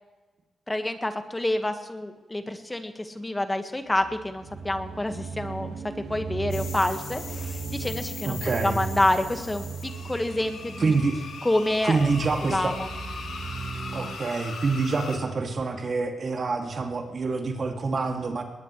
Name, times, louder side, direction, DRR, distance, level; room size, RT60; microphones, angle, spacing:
voice 1, 0.7-5.7 6.1-10.9 11.4-12.0 12.5-12.9, left 1 dB, 20° left, 7 dB, 1.7 m, -28 dB
sound 1, 3.9-14.2, right 5 dB, 70° right, 1.8 m, -37 dB
sound 2, 6.5-15.2, left 5 dB, 75° left, 2.8 m, -40 dB
voice 2, 8.3-8.8 10.8-11.2 11.8-12.7 13.9-18.4, right 4 dB, 55° right, 3 dB, 2.5 m, -26 dB
21.0 x 19.0 x 3.3 m, 1.2 s
supercardioid pair, 45°, 0 cm